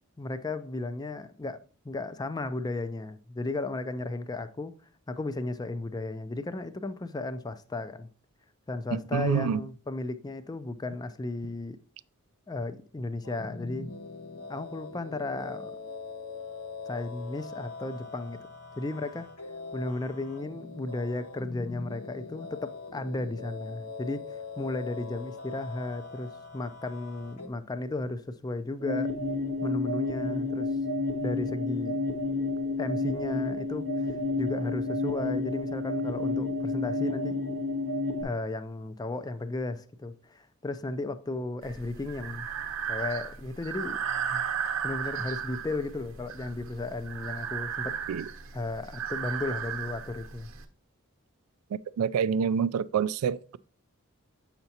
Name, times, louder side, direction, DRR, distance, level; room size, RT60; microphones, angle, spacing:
voice 1, 0.2-4.7 5.1-8.1 8.7-11.8 12.5-13.9 14.5-15.8 16.9-18.4 18.8-19.5 19.7-29.1 29.6-30.7 31.2-32.0 32.8-34.1 34.4-37.4 38.2-42.5 42.9-44.0 44.8-48.0 48.5-50.5, left 2 dB, 20° left, 0.4 m, -34 dB
voice 2, 8.9-9.6 48.1-48.2 52.0-53.6, right 7 dB, 85° right, 0.3 m, -27 dB
sound 1, 13.2-27.5, left 4 dB, 85° left, 1.0 m, -42 dB
sound 2, 28.8-38.2, left 2 dB, 45° left, 1.1 m, -30 dB
Breathing, 41.6-50.6, right 7 dB, 65° right, 0.9 m, -35 dB
7.7 x 5.8 x 2.8 m
head